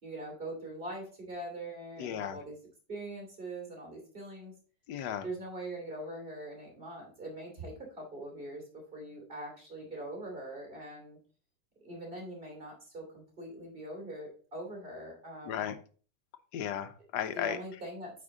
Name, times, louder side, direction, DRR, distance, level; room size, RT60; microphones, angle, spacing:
voice 1, 0.0-2.6 2.9-4.5 5.2-11.2 11.8-15.6 17.3-18.1, right 1 dB, 30° right, 0 dB, 3.0 m, -42 dB
voice 2, 2.0-2.4 4.9-5.2 15.5-15.7 16.5-17.6, left 9 dB, 75° left, 11 dB, 1.3 m, -35 dB
8.5 x 4.5 x 3.8 m, 0.40 s
omnidirectional pair, 1.8 m